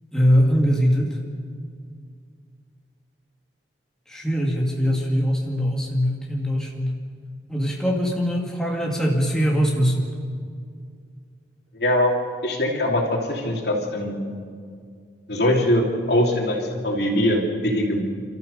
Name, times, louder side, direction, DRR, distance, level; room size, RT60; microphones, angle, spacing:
voice 1, 0.1-1.1 4.1-7.0 7.5-10.1, equal, 5° left, -2 dB, 2.0 m, -22 dB
voice 2, 11.7-12.1 12.4-14.2 15.3-18.0, left 1 dB, 65° left, 0 dB, 3.0 m, -22 dB
29.5 x 13.5 x 6.6 m, 2.2 s
head